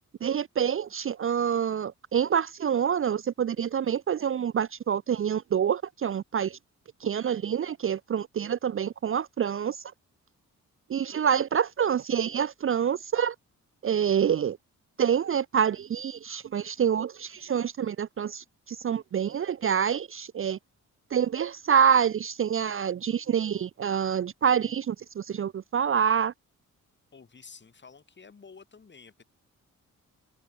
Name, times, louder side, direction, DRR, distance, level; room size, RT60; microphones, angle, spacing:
voice 1, 0.2-6.6 7.0-9.8 10.9-13.3 13.8-14.6 15.0-20.6 21.1-26.3, right 8 dB, 45° right, 0.6 m, -27 dB
voice 2, 27.1-29.2, left 5 dB, 35° left, 7.1 m, -51 dB
wide cardioid pair, 140°, 31 cm